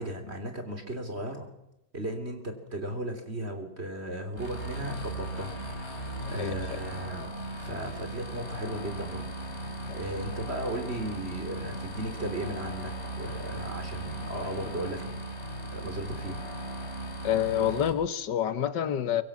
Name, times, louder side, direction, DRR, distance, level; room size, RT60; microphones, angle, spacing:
voice 1, 0.0-1.5 1.9-15.3 15.7-16.4, right 1 dB, 35° right, 7 dB, 3.5 m, -36 dB
sound 1, 4.4-17.9, right 1 dB, 35° left, 4.6 m, -37 dB
voice 2, 6.4-6.8 9.9-10.0 17.2-19.2, left 10 dB, 85° left, 13 dB, 1.9 m, -28 dB
24.5 x 23.0 x 7.4 m, 0.86 s
omnidirectional pair, 1.9 m